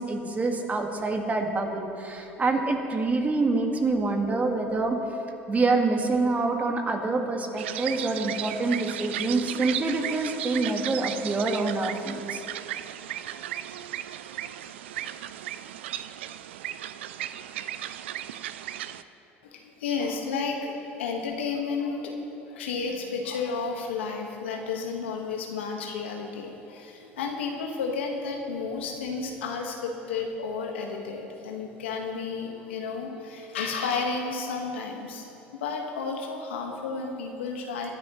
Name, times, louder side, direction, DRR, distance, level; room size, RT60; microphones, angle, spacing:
voice 1, 0.0-5.0 5.5-12.4, right 3 dB, 25° right, 3 dB, 1.8 m, -26 dB
sound 1, 7.6-19.0, right 11 dB, 85° right, 0.4 m, -35 dB
voice 2, 19.4-22.1 22.5-35.2 35.5-37.9, left 4 dB, 85° left, 2 dB, 1.6 m, -32 dB
23.5 x 10.5 x 3.1 m, 2.9 s
hypercardioid pair, 85°, 6 cm